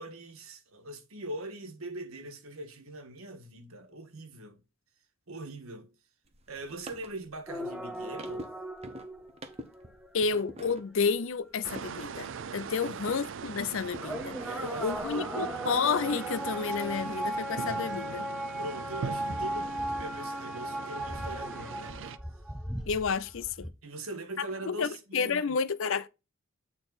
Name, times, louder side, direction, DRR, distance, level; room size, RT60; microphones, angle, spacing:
voice 1, 0.0-4.6 5.3-5.9 6.5-8.5 12.8-13.0 14.5-15.6 18.6-22.0 23.8-25.6, right 1 dB, 75° right, 1.6 m, -41 dB
sound 1, 6.2-13.3 13.6-15.1, right 1 dB, 25° right, 0.8 m, -48 dB
sound 2, 7.5-10.1 13.2-13.3 14.0-23.7, right 1 dB, ahead, 0.6 m, -36 dB
voice 2, 10.1-14.4 14.8-18.3 22.9-23.7 24.4-26.1, left 5 dB, 60° left, 0.5 m, -31 dB
wind small town from cover, 11.6-22.2, right 6 dB, 55° right, 0.4 m, -41 dB
8.7 x 4.0 x 4.0 m
head